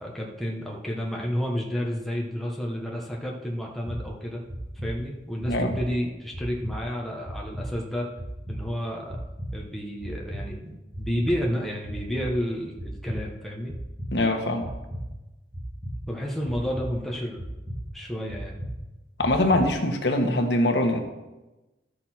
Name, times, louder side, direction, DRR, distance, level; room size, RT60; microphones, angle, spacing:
voice 1, 0.0-4.4 4.8-8.1 8.5-9.2 9.5-13.7 16.1-17.4 17.9-18.5, equal, ahead, -2 dB, 1.2 m, -31 dB
sound 1, 3.9-4.0 4.5-4.9 5.4-5.8 6.3-6.7 7.2-7.7 8.2-8.6 9.1-9.5 10.0-10.4 10.9-11.3 11.8-12.3 12.8-13.2 13.7-14.1 14.6-15.0 15.5-15.9 16.4-16.9 17.4-17.8 18.3-18.7 19.2-19.6, equal, 30° right, 1.8 m, -35 dB
voice 2, 14.1-14.7 19.2-21.0, left 1 dB, 80° left, 4 dB, 1.4 m, -23 dB
13.0 x 6.5 x 4.4 m, 1.1 s
head